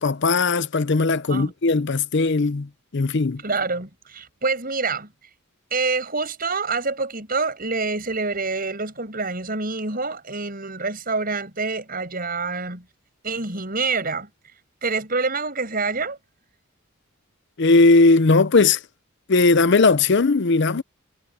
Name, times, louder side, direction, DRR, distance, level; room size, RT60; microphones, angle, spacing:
voice 1, 0.0-3.4 17.6-18.8 19.3-20.8, left 3 dB, 55° left, 0.6 m, -18 dB
voice 2, 3.4-5.1 5.7-12.8 13.2-14.3 14.8-16.2, right 4 dB, 45° right, 7.6 m, -26 dB
head